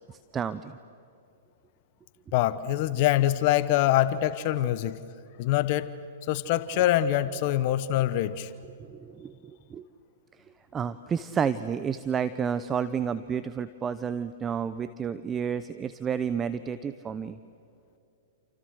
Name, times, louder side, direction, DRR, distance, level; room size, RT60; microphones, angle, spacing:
voice 1, 0.3-0.8 8.9-9.3 9.7-9.8 10.4-10.5 10.7-17.4, right 7 dB, 20° right, 14 dB, 0.8 m, -30 dB
voice 2, 2.3-5.0 5.4-5.9 6.2-8.5, left 13 dB, 50° left, 14 dB, 1.1 m, -24 dB
29.0 x 28.5 x 6.6 m, 2.6 s
hypercardioid pair, 120°, 0 cm